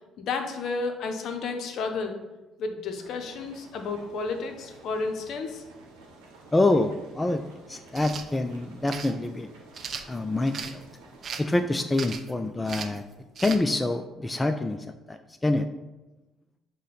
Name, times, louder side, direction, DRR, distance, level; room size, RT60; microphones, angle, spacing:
voice 1, 0.2-2.2 2.6-5.6, left 4 dB, 60° left, 5 dB, 0.6 m, -32 dB
sound 1, 2.9-11.7, right 2 dB, 80° right, 0.8 m, -51 dB
voice 2, 6.5-9.5 10.1-10.8 11.4-13.0 13.4-15.7, left 2 dB, 20° left, 7 dB, 0.3 m, -26 dB
sound 2, 7.9-8.3 8.9-9.1 9.7-10.7 11.2-11.5 11.9-12.3 12.7-13.0 13.4-13.6, right 6 dB, 50° right, 0.4 m, -36 dB
6.3 x 2.1 x 3.8 m, 1.1 s
hypercardioid pair, 50°, 0 cm